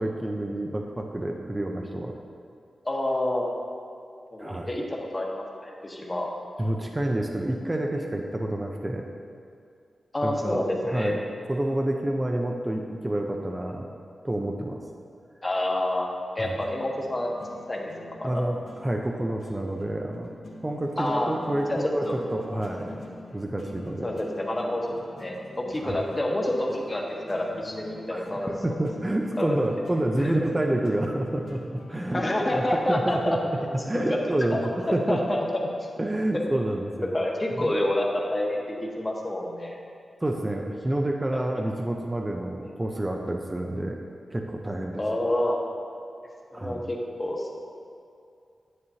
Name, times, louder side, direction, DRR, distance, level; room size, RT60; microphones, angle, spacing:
voice 1, 0.0-2.1 4.4-4.7 6.6-9.1 10.2-11.2 11.5-13.9 14.2-14.8 16.4-16.5 18.2-20.3 20.6-23.1 23.3-24.2 25.8-26.0 28.1-33.6 33.9-35.2 36.0-37.1 37.6-37.7 40.2-44.0 44.3-45.0 46.5-46.8, right 1 dB, 20° right, 1 dB, 0.6 m, -29 dB
voice 2, 2.8-3.4 4.3-6.3 10.1-11.1 15.4-17.3 17.7-18.4 21.0-21.3 21.7-22.1 24.0-27.0 27.3-28.8 29.4-29.6 30.2-30.5 32.1-33.4 33.9-34.0 34.5-35.4 37.1-39.8 41.5-41.6 45.0-45.6 46.5-47.4, left 1 dB, 25° left, -1 dB, 1.2 m, -28 dB
sound 1, 16.6-33.6, left 2 dB, 70° left, 1.0 m, -46 dB
9.6 x 9.1 x 2.8 m, 2.4 s
wide cardioid pair, 95°, 0 cm